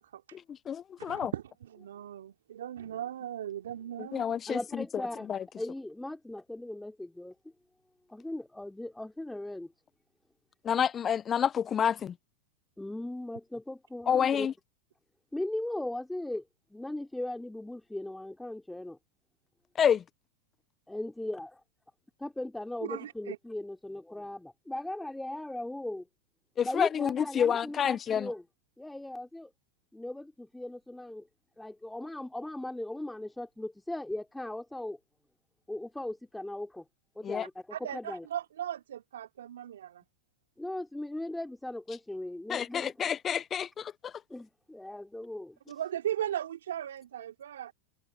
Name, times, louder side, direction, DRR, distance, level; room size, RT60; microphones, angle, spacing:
voice 1, 0.3-1.3 4.0-4.8 5.3-5.4 10.6-12.1 14.1-14.5 19.8-20.0 26.6-28.3 37.2-37.5 42.5-44.1, left 8 dB, 30° left, 1.0 m, -29 dB
voice 2, 1.0-4.2 22.9-23.4 37.7-40.0 45.7-47.7, right 11 dB, 75° right, 3.2 m, -37 dB
voice 3, 4.5-5.3 5.6-7.3 8.1-9.7 12.8-14.5 15.3-16.4 16.7-19.0 20.9-21.5 22.2-26.1 26.6-28.4 28.8-29.5 29.9-31.3 31.6-35.0 35.7-36.8 37.1-38.3 40.6-42.9 44.3-45.6, left 1 dB, 5° left, 3.1 m, -38 dB
hypercardioid pair, 100°, 0 cm